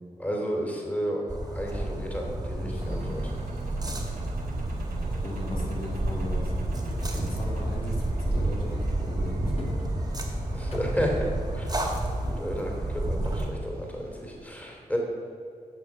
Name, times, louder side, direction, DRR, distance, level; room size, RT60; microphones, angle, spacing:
voice 1, 0.2-3.3 10.5-11.7 12.2-15.0, equal, 10° left, 0 dB, 2.8 m, -32 dB
sound 1, 1.3-13.5, right 1 dB, 25° right, 2.2 m, -30 dB
voice 2, 2.6-3.2 3.8-4.0 5.2-9.7 10.7-10.8, left 1 dB, 70° left, -3 dB, 2.4 m, -38 dB
Engine, 2.8-14.4, right 2 dB, 75° right, 2.1 m, -40 dB
sound 2, 4.9-11.8, left 1 dB, 40° left, 1.6 m, -43 dB
10.5 x 6.3 x 5.9 m, 2.4 s
cardioid pair, 45°, 15 cm